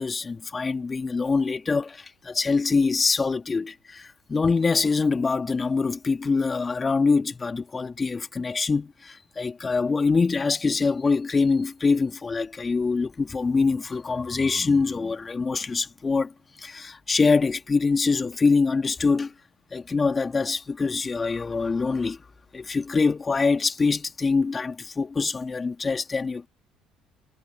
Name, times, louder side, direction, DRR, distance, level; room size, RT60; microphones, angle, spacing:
voice 1, 0.0-16.3 16.6-19.3 19.7-22.2 22.5-26.5, left 4 dB, 30° left, 2.5 m, -24 dB
hypercardioid pair, 60°, 0 cm